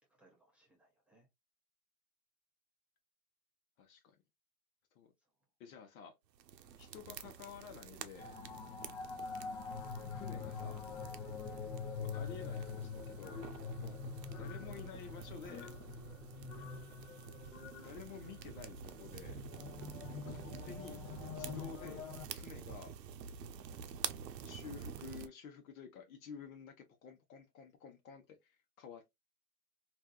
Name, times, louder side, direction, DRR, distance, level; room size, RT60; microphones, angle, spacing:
voice 1, 0.2-1.3 6.6-6.8 8.9-9.1 11.5-11.7 13.9-14.0 16.3-16.5, right 2 dB, 5° right, 0.5 m, -70 dB
voice 2, 3.8-4.2 4.9-5.1 5.6-6.1 6.8-8.4 10.1-10.8 12.0-13.4 13.8-14.0 14.4-15.7 17.8-19.4 20.3-22.0 22.3-22.9 24.4-29.2, left 6 dB, 60° left, 1.0 m, -51 dB
sound 1, 6.4-25.3, right 8 dB, 85° right, 0.7 m, -49 dB
sound 2, 8.2-22.3, left 5 dB, 35° left, 0.7 m, -45 dB
3.4 x 2.7 x 2.3 m
hypercardioid pair, 130°, 48 cm